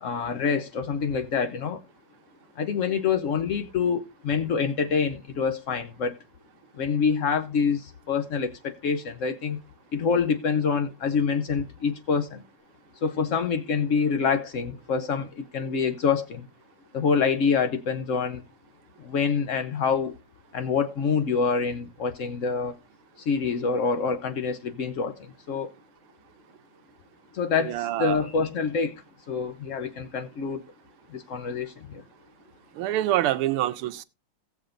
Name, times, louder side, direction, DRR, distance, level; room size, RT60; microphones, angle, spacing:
voice 1, 0.0-1.8 2.6-6.2 6.8-9.6 9.9-12.4 13.0-16.5 16.9-18.4 19.0-20.1 20.5-22.8 23.2-25.7 27.3-30.6 31.1-32.0, left 5 dB, 90° left, 0.6 m, -26 dB
voice 2, 27.6-28.3 32.7-34.0, right 13 dB, 85° right, 1.5 m, -26 dB
18.0 x 7.2 x 2.5 m
omnidirectional pair, 2.4 m